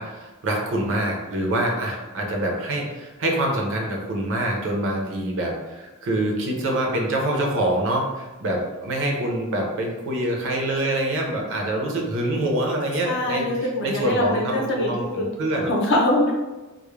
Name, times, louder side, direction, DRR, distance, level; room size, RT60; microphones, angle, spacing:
voice 1, 0.0-13.5 13.8-15.7, right 1 dB, 60° right, 0 dB, 0.5 m, -25 dB
voice 2, 13.0-14.9 15.1-15.3 15.6-16.3, left 1 dB, 55° left, -1 dB, 0.6 m, -23 dB
2.3 x 2.0 x 3.0 m, 1.1 s
head